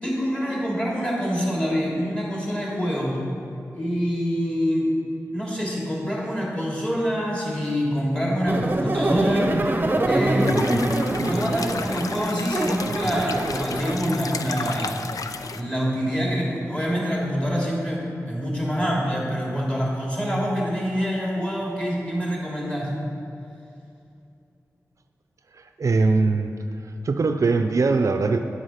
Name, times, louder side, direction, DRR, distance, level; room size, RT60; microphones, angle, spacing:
voice 1, 0.0-3.2 3.7-4.9 5.3-9.5 10.0-15.0 15.5-23.0, equal, 20° left, -4 dB, 2.9 m, -26 dB
sound 1, 8.5-14.0, right 2 dB, 35° right, 0.8 m, -24 dB
sound 2, 10.4-15.6, left 5 dB, 80° left, 0.5 m, -33 dB
voice 2, 25.6-26.6 27.0-28.4, right 3 dB, 65° right, 7 dB, 0.5 m, -21 dB
10.0 x 8.0 x 5.8 m, 2.6 s
wide cardioid pair, 100°, 6 cm